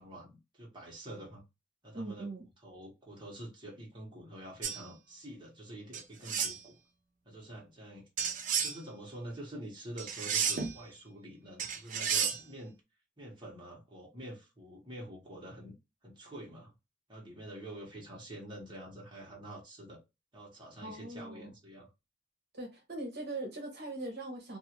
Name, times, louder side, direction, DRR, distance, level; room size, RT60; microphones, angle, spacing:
voice 1, 0.0-1.4 1.8-2.3 2.6-6.8 7.2-8.0 8.6-12.7 13.2-15.7 16.0-16.7 17.1-20.0 20.3-21.9, right 1 dB, 25° right, 1.2 m, -47 dB
voice 2, 1.9-2.4 20.8-21.5 22.5-24.6, right 2 dB, 60° right, 1.0 m, -41 dB
sound 1, 4.6-4.8 5.9-6.6 8.2-8.8 10.0-10.8 11.6-12.4, right 7 dB, 45° right, 0.5 m, -32 dB
2.6 x 2.5 x 2.9 m
head